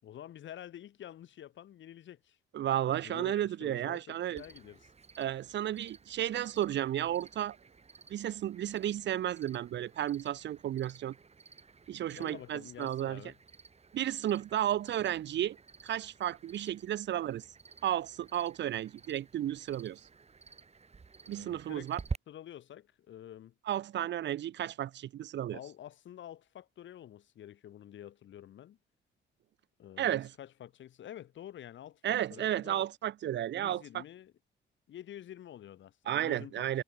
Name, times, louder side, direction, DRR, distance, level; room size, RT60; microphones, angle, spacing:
voice 1, 0.0-2.4 2.9-4.9 12.1-13.3 21.3-21.9 22.3-23.5 25.5-28.8 29.8-32.9 33.5-34.3 34.9-36.8, left 11 dB, 70° left, 3.9 m, -49 dB
voice 2, 2.5-4.4 5.2-7.6 8.1-11.1 11.9-13.2 13.9-15.6 15.8-17.4 17.8-20.0 21.3-22.0 23.7-25.6 30.0-30.3 32.0-34.0 36.1-36.8, right 11 dB, 65° right, 0.9 m, -33 dB
Cricket, 4.4-22.2, right 4 dB, 30° right, 5.5 m, -50 dB
cardioid pair, 90°, 20 cm